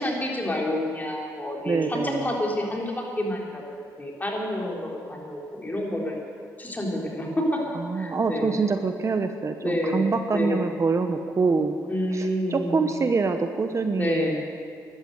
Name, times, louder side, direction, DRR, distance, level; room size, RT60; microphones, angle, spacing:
voice 1, 0.0-3.6 4.0-6.2 6.6-7.6 8.0-8.6 9.6-10.1 10.3-10.7 11.9-12.9 14.0-14.4, left 1 dB, 25° left, -2 dB, 3.9 m, -28 dB
voice 2, 1.7-2.3 7.7-11.8 12.1-14.5, right 4 dB, 40° right, 7 dB, 1.0 m, -25 dB
13.5 x 11.5 x 8.0 m, 2.1 s
supercardioid pair, 65°, 8 cm